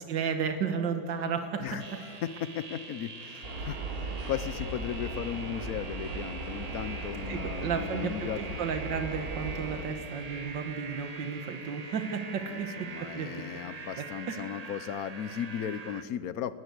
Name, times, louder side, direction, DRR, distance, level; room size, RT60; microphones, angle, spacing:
voice 1, 0.1-1.8 7.3-13.4 14.0-14.5, right 6 dB, 85° right, 7 dB, 2.0 m, -33 dB
voice 2, 1.6-8.6 12.5-16.5, left 9 dB, 65° left, 15 dB, 1.0 m, -36 dB
sound 1, 1.8-16.0, right 4 dB, 35° right, 0.7 m, -44 dB
sound 2, 3.4-9.8, right 2 dB, 55° right, 3.7 m, -38 dB
20.0 x 20.0 x 8.3 m, 2.3 s
omnidirectional pair, 1.9 m